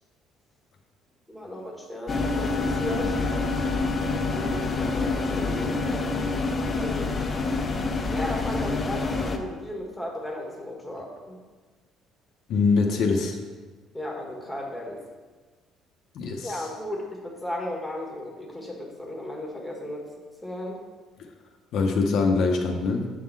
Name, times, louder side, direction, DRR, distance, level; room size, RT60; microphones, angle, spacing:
voice 1, 1.3-3.2 4.2-7.6 8.0-11.4 13.9-15.0 16.4-20.1 20.4-20.8, left 1 dB, ahead, -2 dB, 1.3 m, -35 dB
sound 1, 2.1-9.4, left 3 dB, 20° left, 0.6 m, -27 dB
voice 2, 12.5-13.4 16.1-16.7 21.7-23.1, left 4 dB, 60° left, 2 dB, 0.7 m, -23 dB
7.5 x 3.7 x 6.0 m, 1.3 s
cardioid pair, 155°, 0 cm